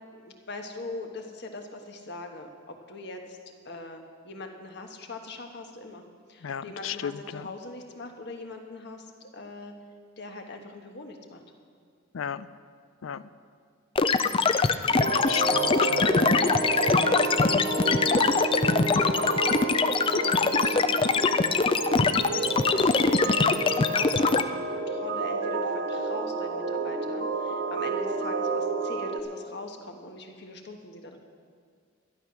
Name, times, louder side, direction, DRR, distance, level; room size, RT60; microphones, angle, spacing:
voice 1, 0.1-3.4 3.6-6.0 6.3-9.7 10.2-11.4 14.7-15.0 16.8-18.0 19.0-21.4 22.3-31.2, left 2 dB, 60° left, 4 dB, 1.4 m, -41 dB
voice 2, 6.4-7.5 12.1-12.5 13.0-13.2 15.1-16.2, left 8 dB, 85° left, 16 dB, 0.4 m, -35 dB
sound 1, 14.0-24.4, left 4 dB, 25° left, 0.4 m, -23 dB
sound 2, 14.9-29.2, right 3 dB, 70° right, 1.2 m, -30 dB
12.5 x 11.0 x 6.1 m, 2.1 s
head